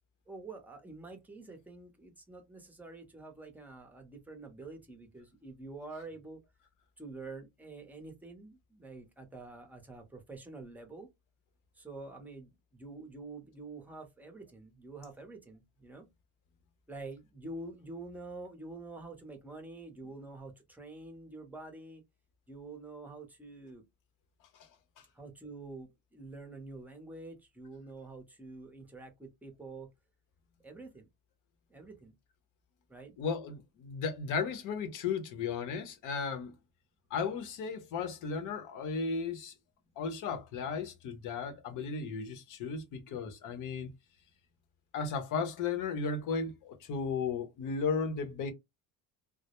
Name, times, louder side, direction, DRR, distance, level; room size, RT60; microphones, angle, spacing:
voice 1, 0.3-6.4 7.0-11.1 11.7-16.1 16.9-22.0 22.5-23.8 25.1-29.9 30.6-31.1 31.7-32.1 32.9-33.2, right 3 dB, 5° right, 0.6 m, -47 dB
voice 2, 33.2-36.5 37.1-39.5 40.0-43.9 44.9-48.5, left 5 dB, 60° left, 0.7 m, -35 dB
2.1 x 2.0 x 2.9 m
cardioid pair, 130°, 35 cm